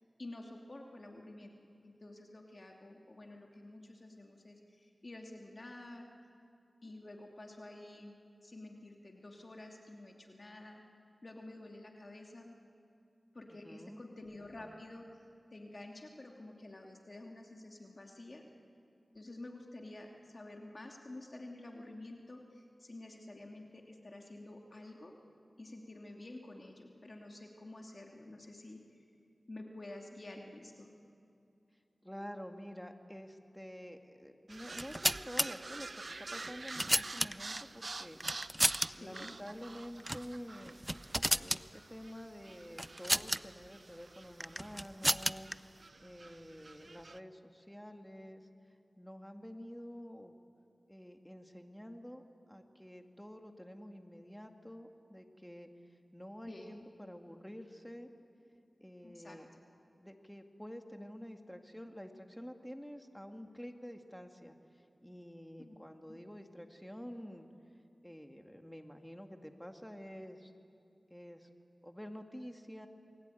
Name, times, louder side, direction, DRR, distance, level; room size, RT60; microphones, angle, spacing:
voice 1, 0.2-1.5 1.8-6.1 6.8-10.8 11.2-12.5 13.3-15.0 15.5-18.4 19.1-25.1 25.6-29.0 29.5-30.9 39.0-39.3 56.5-56.9 59.0-59.4 65.6-65.8 66.1-66.2, left 2 dB, 50° left, 1 dB, 2.8 m, -50 dB
voice 2, 13.5-14.0 32.0-35.9 36.2-38.2 38.9-40.8 41.4-45.5 46.0-48.4 49.0-50.3 50.9-52.2 52.5-55.7 56.1-58.1 58.8-59.5 60.0-64.6 65.0-67.5 68.0-70.5 71.1-71.5 71.8-72.9, equal, 5° left, 4 dB, 2.2 m, -49 dB
sound 1, 34.5-47.2, right 3 dB, 65° right, 0.7 m, -48 dB
sound 2, 34.7-35.5 36.3-37.6 38.2-38.9 39.2-39.3 40.0-40.3 40.6-41.6 42.8-43.4 44.4-45.5, right 1 dB, 15° right, 0.6 m, -32 dB
28.5 x 21.5 x 9.3 m, 2.5 s
wide cardioid pair, 50°, 0 cm